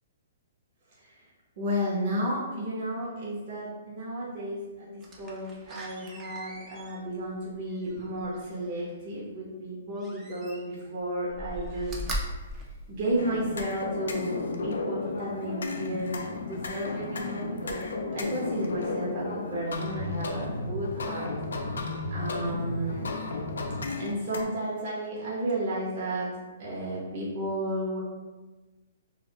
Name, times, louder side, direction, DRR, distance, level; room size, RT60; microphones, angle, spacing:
voice 1, 1.6-12.0 12.9-14.4 14.6-17.8 18.1-21.3 22.1-23.1 24.0-26.3 26.6-28.0, right 1 dB, 45° right, -6 dB, 0.8 m, -32 dB
Slam, 5.0-8.9 10.0-10.9 11.3-13.6 14.1-14.2, equal, 15° right, 0.4 m, -39 dB
sound 1, 13.2-24.4, left 3 dB, 90° left, 0.3 m, -33 dB
2.3 x 2.0 x 3.4 m, 1.2 s
hypercardioid pair, 150°, 0 cm